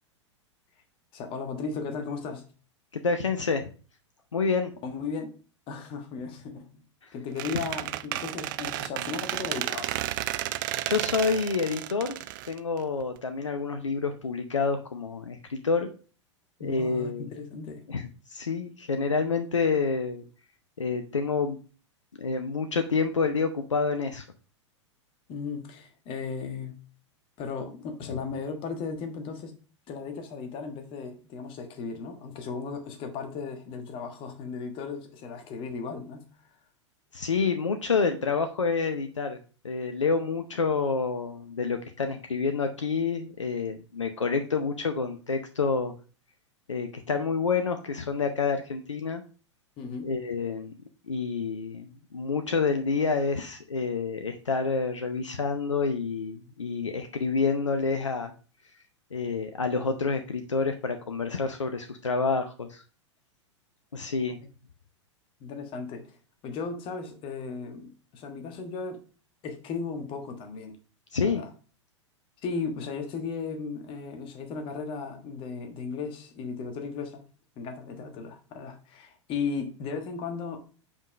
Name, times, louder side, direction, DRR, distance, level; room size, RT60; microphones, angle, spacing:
voice 1, 1.1-2.4 4.8-5.4 5.7-6.8 7.1-10.0 16.6-17.9 25.3-26.8 27.4-29.6 29.9-36.3 49.8-50.1 64.4-64.5 65.4-66.2 66.4-69.0 69.4-70.8 71.2-71.5 72.4-77.2 77.6-80.6, left 5 dB, 35° left, 1.4 m, -36 dB
voice 2, 2.9-3.6 4.3-4.7 10.9-12.1 12.5-15.9 16.6-17.3 17.9-20.3 20.8-21.6 22.2-24.2 37.1-39.4 39.6-45.9 46.7-49.2 50.0-50.7 51.1-58.3 59.1-62.8 63.9-64.4 71.1-71.4, left 4 dB, 75° left, 0.7 m, -28 dB
Squeak, 7.4-13.2, right 15 dB, 45° right, 0.4 m, -32 dB
5.5 x 4.8 x 4.9 m
figure-of-eight pair, 95°, 16 cm